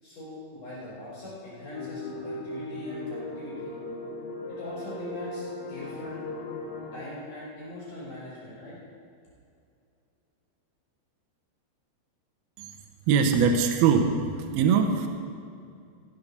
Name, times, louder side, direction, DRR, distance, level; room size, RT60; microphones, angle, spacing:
voice 1, 0.0-3.7 4.5-6.2 6.9-8.8, left 1 dB, 45° left, -8 dB, 5.6 m, -41 dB
sound 1, 1.7-7.0, left 2 dB, 85° left, 3.8 m, -37 dB
voice 2, 13.1-15.1, right 6 dB, 75° right, 4 dB, 2.4 m, -22 dB
17.0 x 7.5 x 6.8 m, 2.4 s
omnidirectional pair, 5.5 m